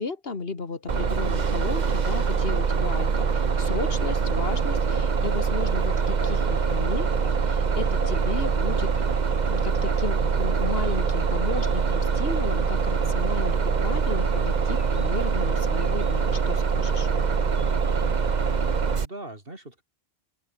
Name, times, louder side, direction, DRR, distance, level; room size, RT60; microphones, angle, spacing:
voice 1, 0.0-8.9 9.5-17.1, left 4 dB, 65° left, 2.3 m, -34 dB
Bus, 0.9-19.1, right 5 dB, 45° right, 1.1 m, -24 dB
sound 1, 5.2-16.3 16.6-18.7, equal, 15° right, 6.5 m, -44 dB
voice 2, 18.5-19.8, right 1 dB, 60° right, 6.1 m, -41 dB
open air
omnidirectional pair, 1.1 m